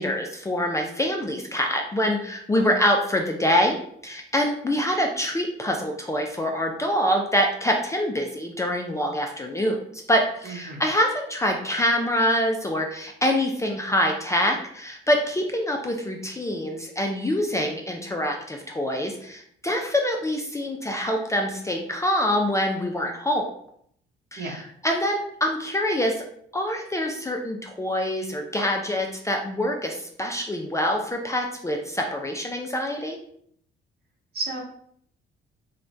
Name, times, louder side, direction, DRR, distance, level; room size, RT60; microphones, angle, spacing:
voice 1, 0.0-3.8 4.0-23.5 24.3-26.2 26.5-33.2, equal, 15° left, 2 dB, 0.4 m, -25 dB
voice 2, 10.4-10.8 24.4-24.6 34.3-34.6, right 3 dB, 55° right, 0 dB, 0.9 m, -32 dB
3.2 x 2.2 x 2.6 m, 0.66 s
cardioid pair, 90°, 20 cm